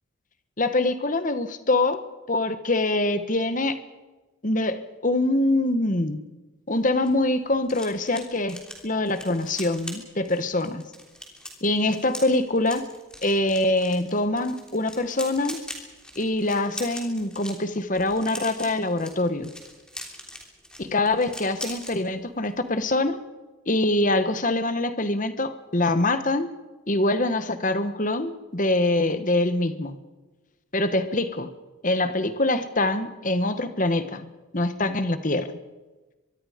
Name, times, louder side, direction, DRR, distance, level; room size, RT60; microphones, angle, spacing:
voice 1, 0.6-3.8 4.4-6.2 6.7-10.8 11.6-12.9 13.2-15.6 16.1-19.5 20.8-23.2 23.7-26.5 26.9-30.0 30.7-31.5 31.8-34.3 34.5-35.6, left 2 dB, 40° left, 10 dB, 1.4 m, -24 dB
sound 1, 6.8-22.0 22.3-22.6 22.8-23.1, left 1 dB, 5° left, 3.2 m, -41 dB
24.0 x 23.5 x 5.2 m, 1.2 s
head